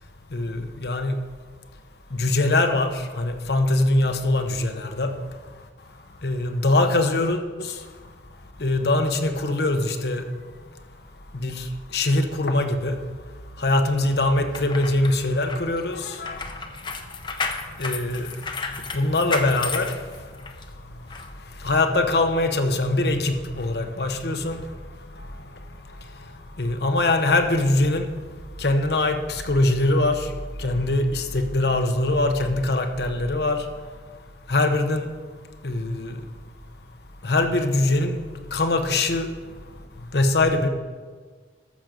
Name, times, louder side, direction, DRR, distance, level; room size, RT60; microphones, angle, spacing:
voice 1, 0.3-1.2 2.1-5.1 6.2-7.7 8.6-10.2 11.3-11.6 11.9-13.0 13.6-16.4 17.8-18.3 18.9-19.9 21.6-24.6 26.6-28.1 28.6-30.3 30.6-33.6 34.5-35.1 35.6-36.2 37.2-38.2 38.5-39.3 40.1-40.7, left 2 dB, 65° left, 7 dB, 1.0 m, -22 dB
sound 1, 14.4-20.6 21.1-21.3, left 4 dB, 25° left, 0.7 m, -33 dB
13.5 x 6.4 x 5.3 m, 1.5 s
head